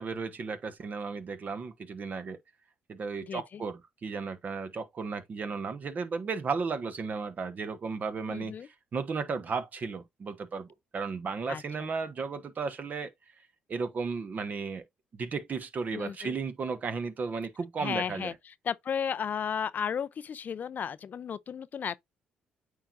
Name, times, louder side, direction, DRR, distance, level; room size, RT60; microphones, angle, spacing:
voice 1, 0.0-2.4 2.9-13.1 13.7-14.8 15.1-18.3, right 4 dB, 50° right, 1.2 m, -34 dB
voice 2, 3.3-3.6 8.3-8.7 11.5-11.9 15.9-16.3 17.8-22.0, left 7 dB, 50° left, 0.4 m, -34 dB
8.7 x 4.7 x 2.5 m
supercardioid pair, 70°, 4 cm